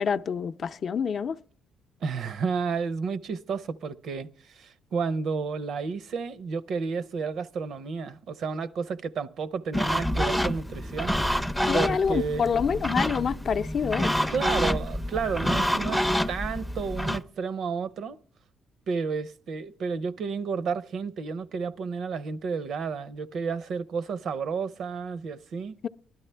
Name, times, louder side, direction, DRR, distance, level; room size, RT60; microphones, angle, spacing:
voice 1, 0.0-1.4 11.7-14.1 25.8-25.9, left 6 dB, 50° left, 0.5 m, -27 dB
voice 2, 2.0-11.2 11.7-12.4 14.3-18.2 18.9-25.7, right 5 dB, 65° right, 0.7 m, -31 dB
sound 1, 9.7-17.2, equal, ahead, 0.5 m, -27 dB
19.5 x 12.0 x 3.3 m
cardioid pair, 120°, 0 cm